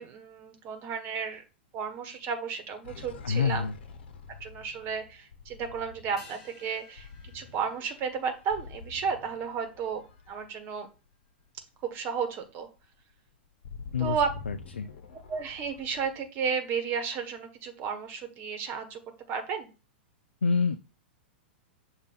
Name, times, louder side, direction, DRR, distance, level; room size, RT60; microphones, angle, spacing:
voice 1, 0.0-1.4 1.7-3.6 4.4-7.1 7.3-10.9 11.8-12.7 14.0-14.3 15.3-19.0 19.3-19.7, right 6 dB, 35° right, 7 dB, 1.3 m, -33 dB
sound 1, 2.8-11.2 11.6-11.8 12.1-16.3, left 5 dB, 65° left, 1.0 m, -47 dB
voice 2, 3.2-3.7 13.9-14.2 14.5-14.9 20.4-20.8, left 5 dB, 85° left, 9 dB, 0.4 m, -26 dB
sound 2, 6.2-10.9 11.1-11.2, left 2 dB, 5° right, 3.4 m, -57 dB
6.6 x 2.6 x 5.4 m, 0.33 s
hypercardioid pair, 105°, 6 cm